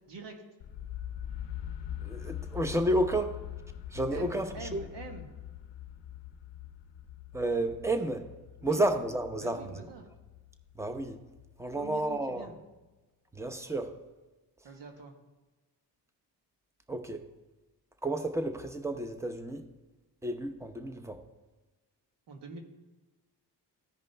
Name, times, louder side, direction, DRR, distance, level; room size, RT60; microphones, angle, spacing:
voice 1, 0.1-0.4 4.1-5.3 8.6-8.8 9.3-10.1 11.7-12.5 14.6-15.1 22.3-22.6, right 4 dB, 75° right, 4 dB, 1.5 m, -45 dB
sound 1, 0.6-12.4, left 10 dB, 90° left, 0.7 m, -43 dB
voice 2, 2.0-3.4 3.9-4.8 7.3-8.3 8.6-9.6 10.8-11.2 11.6-12.5 13.3-13.9 16.9-17.3 18.0-19.6 20.2-21.2, right 1 dB, 5° right, 7 dB, 0.8 m, -31 dB
14.5 x 5.2 x 3.4 m, 1.2 s
cardioid pair, 80°, 43 cm